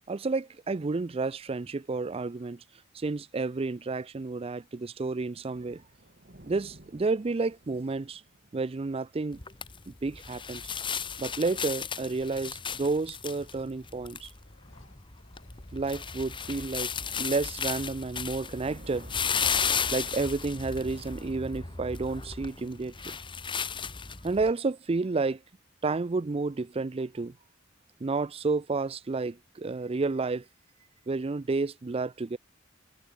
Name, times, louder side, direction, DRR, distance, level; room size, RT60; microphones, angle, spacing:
voice 1, 0.1-2.6 2.9-5.8 6.5-8.2 8.5-9.4 9.9-10.6 11.2-14.3 15.7-16.9 17.2-19.1 19.9-23.2 24.2-25.4 25.8-27.3 28.0-30.4 31.1-32.4, right 3 dB, 30° right, 0.4 m, -31 dB
sound 1, 2.3-3.3 5.0-5.1 5.4-5.9 6.5-8.0 8.6-9.0 9.4-13.9 14.2-18.1, left 3 dB, 70° left, 7.7 m, -68 dB
sound 2, 5.5-9.8 10.1-10.3 10.7-10.9 11.6-12.0 16.0-24.0, right 1 dB, 45° right, 3.3 m, -54 dB
sound 3, 9.3-24.5, left 6 dB, 25° left, 1.4 m, -34 dB
head